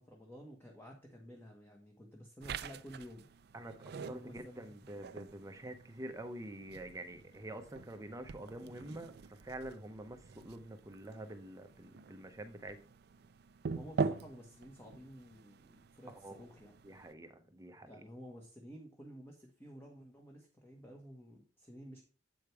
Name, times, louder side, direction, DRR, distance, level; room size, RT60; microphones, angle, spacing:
voice 1, 0.0-3.3 4.0-4.7 13.7-16.8 17.8-22.0, equal, 15° left, 0 dB, 1.2 m, -52 dB
sound 1, 2.4-17.1, right 5 dB, 60° right, 0.4 m, -44 dB
voice 2, 4.1-9.1 9.4-12.8 16.1-16.4 16.8-17.9, right 1 dB, 20° right, 7 dB, 0.7 m, -47 dB
7.9 x 5.1 x 4.6 m, 0.35 s
head